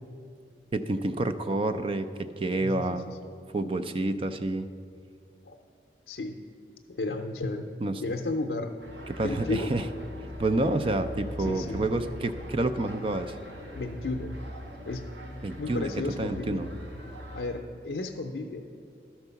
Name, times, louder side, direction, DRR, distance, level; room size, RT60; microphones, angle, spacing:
voice 1, 0.7-3.1 3.5-4.7 7.8-8.0 9.1-9.8 10.4-13.3 15.4-15.9 16.2-16.7, right 2 dB, 30° right, 10 dB, 0.4 m, -28 dB
voice 2, 6.1-6.4 6.9-7.7 8.0-8.7 9.2-9.7 11.4-11.9 13.7-14.4 14.9-15.0 15.6-16.6 17.3-18.7, left 3 dB, 70° left, 0 dB, 0.5 m, -33 dB
sound 1, 8.8-17.4, left 1 dB, 85° right, 1.2 m, -41 dB
11.5 x 4.6 x 6.8 m, 2.4 s
head